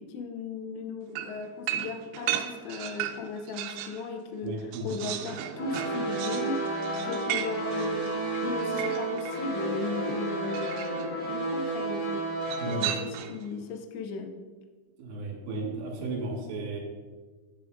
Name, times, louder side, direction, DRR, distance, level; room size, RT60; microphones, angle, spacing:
voice 1, 0.0-6.7 7.0-12.3 12.7-14.4, left 4 dB, 80° left, 5 dB, 2.7 m, -36 dB
sound 1, 1.2-4.0 4.4-9.5 10.5-11.1 12.4-13.5, right 12 dB, 90° right, 3.1 m, -35 dB
voice 2, 4.4-4.9 12.5-12.9 15.0-16.8, right 2 dB, 65° right, -2 dB, 3.7 m, -34 dB
sound 2, 5.5-12.9, right 2 dB, 50° left, 1.9 m, -31 dB
9.9 x 9.0 x 2.5 m, 1.4 s
omnidirectional pair, 5.6 m